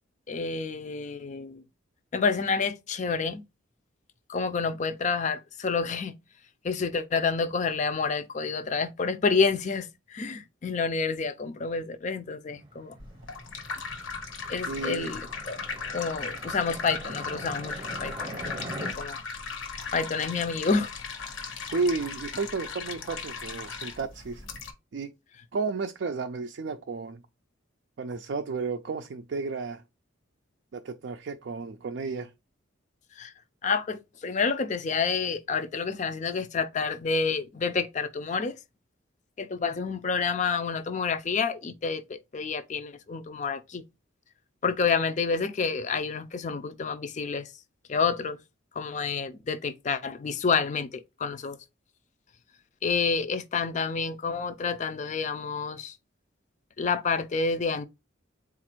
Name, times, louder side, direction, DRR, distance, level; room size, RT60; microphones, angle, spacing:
voice 1, 0.3-1.6 2.1-3.4 4.3-6.1 6.6-12.9 14.5-15.6 15.9-19.2 19.9-20.9 33.2-33.3 33.6-38.6 39.4-43.8 44.6-47.5 47.9-48.4 48.7-51.6 52.8-56.0 56.8-57.9, left 5 dB, 35° left, 0.4 m, -29 dB
sound 1, 12.5-18.9, right 2 dB, 25° right, 0.8 m, -43 dB
sound 2, 13.0-24.7, left 5 dB, 75° left, 0.9 m, -37 dB
voice 2, 14.7-15.1 21.7-24.5 24.9-25.1 25.5-27.2 28.0-29.8 30.7-32.3, right 4 dB, 60° right, 0.4 m, -32 dB
4.1 x 2.5 x 4.4 m
head